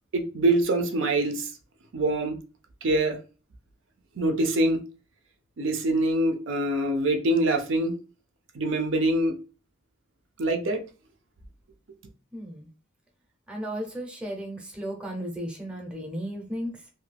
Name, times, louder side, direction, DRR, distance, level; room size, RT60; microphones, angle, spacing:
voice 1, 0.1-1.5 1.9-2.3 2.8-3.2 4.2-4.8 5.6-7.9 8.6-9.3 10.4-10.8, right 1 dB, 65° right, 5 dB, 0.5 m, -24 dB
voice 2, 12.3-12.7 13.5-16.9, equal, 5° right, 1 dB, 0.6 m, -35 dB
2.7 x 2.4 x 3.3 m, 0.34 s
head